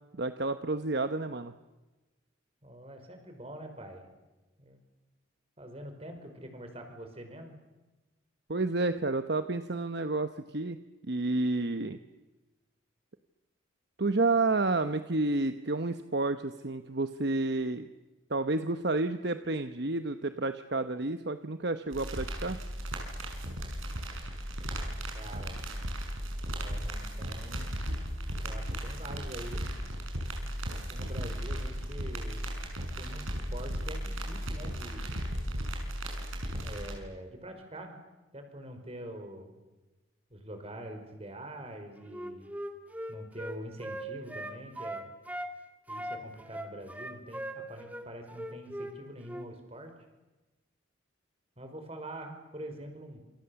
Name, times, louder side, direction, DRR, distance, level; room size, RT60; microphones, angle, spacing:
voice 1, 0.1-1.5 8.5-10.8 11.0-12.0 14.0-17.9 18.3-22.6, right 2 dB, 55° right, 9 dB, 1.0 m, -30 dB
voice 2, 2.6-4.1 4.6-4.8 5.6-7.5 25.1-25.6 26.5-27.8 28.4-29.6 30.7-32.5 33.0-35.2 36.6-38.0 38.3-39.5 40.3-42.5 43.1-45.1 45.9-49.9 51.6-53.2, right 1 dB, 30° right, 5 dB, 5.0 m, -45 dB
sound 1, 21.9-36.9, equal, 85° right, 6.1 m, -36 dB
Wind instrument woodwind instrument, 42.1-45.5 45.9-49.0 49.2-49.5, right 1 dB, 10° right, 2.0 m, -39 dB
28.5 x 27.5 x 7.1 m, 1.1 s
head